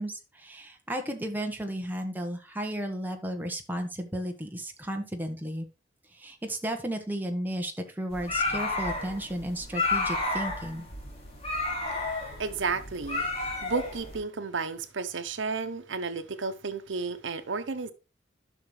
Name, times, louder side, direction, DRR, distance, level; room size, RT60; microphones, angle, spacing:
voice 1, 0.0-5.7 6.1-10.9, right 1 dB, 10° right, 1.3 m, -34 dB
sound 1, 8.1-14.2, left 3 dB, 35° left, 2.6 m, -31 dB
voice 2, 12.4-17.9, right 4 dB, 90° right, 0.8 m, -33 dB
11.5 x 5.9 x 3.2 m
head